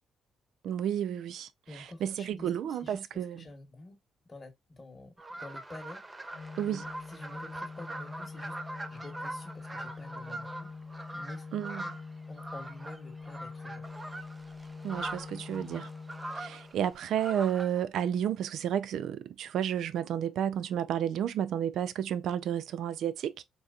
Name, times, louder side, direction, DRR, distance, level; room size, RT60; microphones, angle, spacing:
voice 1, 0.6-1.5 1.8-3.4 6.6-6.8 11.5-12.0 14.8-15.9 16.3-23.4, right 9 dB, 75° right, 0.3 m, -31 dB
voice 2, 1.7-4.0 4.3-6.4 6.7-10.7 11.1-11.5 12.3-13.8, left 2 dB, 30° left, 1.1 m, -48 dB
sound 1, 5.2-17.8, right 2 dB, 20° right, 0.5 m, -42 dB
Organ, 6.3-17.2, left 4 dB, 50° left, 0.9 m, -45 dB
3.6 x 2.8 x 2.4 m
cardioid pair, 90°, 0 cm